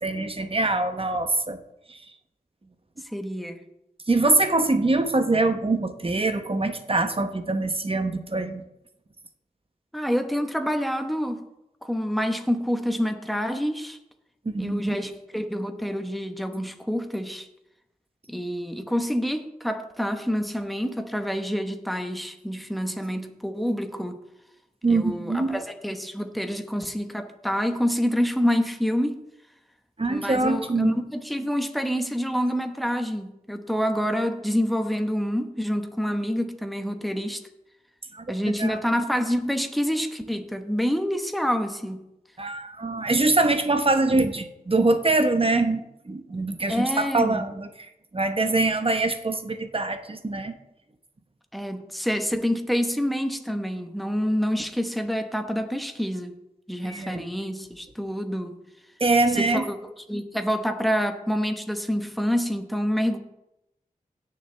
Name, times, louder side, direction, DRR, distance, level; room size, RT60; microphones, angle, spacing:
voice 1, 0.0-1.6 1.9-2.0 4.1-8.6 14.4-15.0 24.8-25.6 30.0-31.0 38.1-38.3 38.6-38.8 42.4-50.6 56.8-57.3 59.0-59.7, right 2 dB, 40° right, 8 dB, 1.0 m, -24 dB
voice 2, 3.1-3.6 9.9-11.5 11.8-14.0 14.6-17.5 18.3-24.2 24.9-29.2 30.1-37.4 38.3-42.0 46.7-47.4 51.5-56.4 56.7-58.6 59.3-63.2, equal, ahead, 6 dB, 1.1 m, -27 dB
17.0 x 6.8 x 3.4 m, 0.86 s
wide cardioid pair, 60°, 15 cm